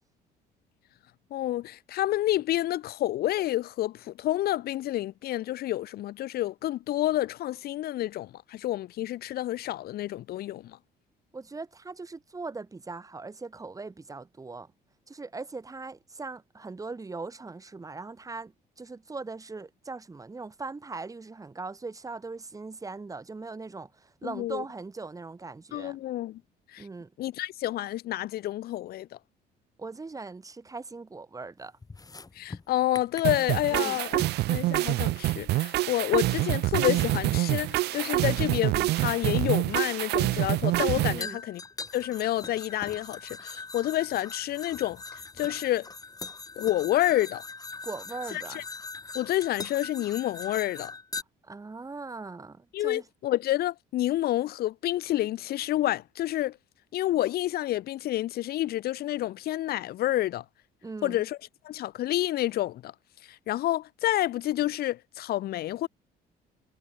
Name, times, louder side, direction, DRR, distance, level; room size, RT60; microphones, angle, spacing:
voice 1, 1.3-10.8 24.2-24.6 25.7-26.4 26.7-26.9 27.2-29.1 32.3-34.2 34.5-41.6 41.9-45.0 45.4-45.9 46.6-47.4 48.3-48.6 49.1-50.9 52.7-56.6 56.9-60.4 61.0-61.4 61.6-62.9 63.2-65.9, left 14 dB, 65° left, 1.0 m, -29 dB
voice 2, 11.3-14.7 15.1-18.5 18.8-26.0 26.8-27.1 29.8-31.7 33.7-34.0 41.1-41.4 47.8-48.6 51.5-53.0 60.8-61.2, right 3 dB, 20° right, 3.9 m, -40 dB
sound 1, 31.8-33.8 34.2-34.4 35.8-35.9 37.1-37.4 38.6-38.7 41.2-51.2, left 4 dB, 20° left, 4.4 m, -41 dB
sound 2, 33.2-41.2, right 17 dB, 75° right, 1.1 m, -26 dB
cardioid pair, 110°, 17 cm